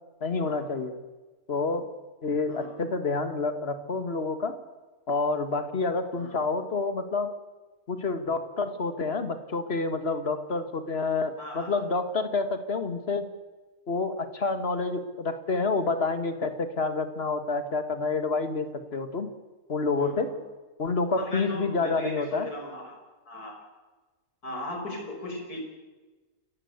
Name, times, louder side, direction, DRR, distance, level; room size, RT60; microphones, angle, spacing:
voice 1, 0.2-0.9 1.5-1.9 2.2-4.6 5.1-7.3 7.9-13.3 13.9-19.3 19.7-20.3 20.8-22.5, left 3 dB, 40° left, 9 dB, 2.0 m, -28 dB
voice 2, 11.4-11.8 20.0-20.4 21.2-23.0 23.3-23.5 24.4-25.6, left 1 dB, 80° left, 2 dB, 6.2 m, -38 dB
28.0 x 15.5 x 8.1 m, 1.2 s
omnidirectional pair, 1.6 m